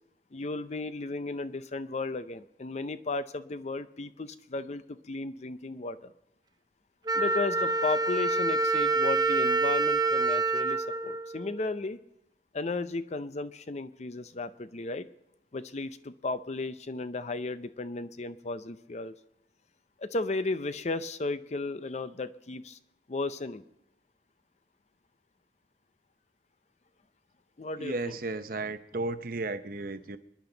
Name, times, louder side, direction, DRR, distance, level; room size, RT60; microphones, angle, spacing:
voice 1, 0.3-6.1 7.1-12.0 12.5-15.1 15.5-19.1 20.0-22.8 23.1-23.6 27.6-28.2, left 3 dB, 40° left, 13 dB, 0.6 m, -34 dB
Wind instrument woodwind instrument, 7.1-11.9, right 3 dB, 25° right, 0.6 m, -27 dB
voice 2, 27.8-30.2, right 2 dB, 50° right, 10 dB, 0.8 m, -34 dB
25.5 x 10.5 x 3.9 m, 0.83 s
head